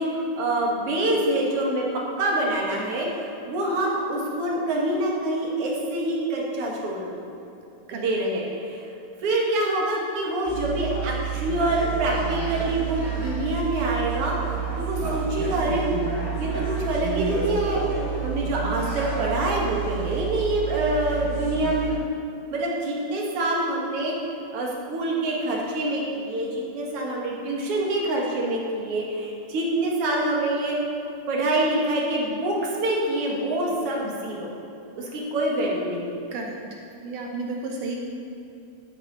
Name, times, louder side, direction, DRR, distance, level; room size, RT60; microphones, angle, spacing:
voice 1, 0.0-1.8 2.2-7.2 7.9-8.9 9.2-15.9 16.4-17.9 18.2-21.9 22.5-30.8 31.3-34.5 35.0-36.2, right 1 dB, 50° right, -3 dB, 2.1 m, -26 dB
sound 1, 10.5-22.0, right 7 dB, 20° right, 0.9 m, -29 dB
voice 2, 36.3-38.0, right 3 dB, 70° right, 0 dB, 2.1 m, -33 dB
12.5 x 9.0 x 4.1 m, 2.7 s
omnidirectional pair, 4.2 m